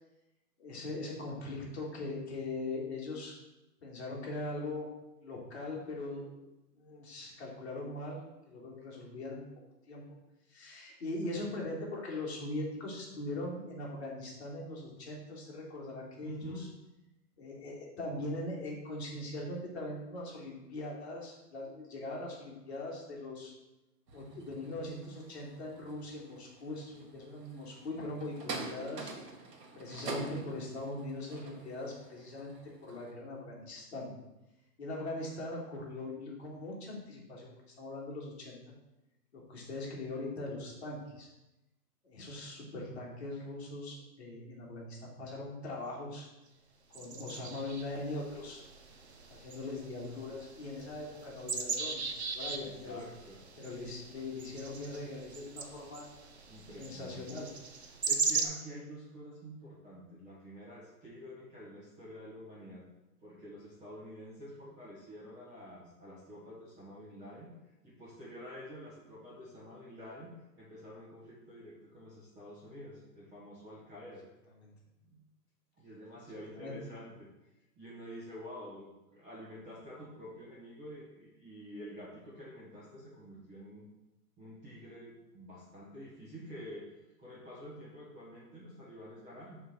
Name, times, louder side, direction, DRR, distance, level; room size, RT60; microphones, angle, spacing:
voice 1, 0.6-3.3 3.8-4.9 5.2-6.3 6.8-8.2 8.5-9.5 9.9-10.0 10.5-16.7 17.4-23.5 24.1-29.1 29.7-32.5 32.8-34.1 34.8-38.7 39.3-41.3 42.0-46.3 46.9-48.6 49.3-53.0 53.6-56.1 56.8-57.5 74.6-74.7 76.6-76.8, left 2 dB, 40° left, -3 dB, 2.0 m, -41 dB
voice 2, 16.2-16.7 52.6-53.4 56.5-57.4 58.0-62.8 63.2-67.5 67.8-70.3 70.6-74.2 75.0-75.2 75.8-77.3 77.7-83.9 84.4-89.6, equal, 15° right, -9 dB, 1.4 m, -48 dB
sound 1, 24.1-33.1, right 3 dB, 85° right, 1.6 m, -46 dB
sound 2, 46.9-58.4, right 4 dB, 45° right, 0.6 m, -39 dB
7.5 x 3.5 x 6.0 m, 0.96 s
hypercardioid pair, 175°, 48 cm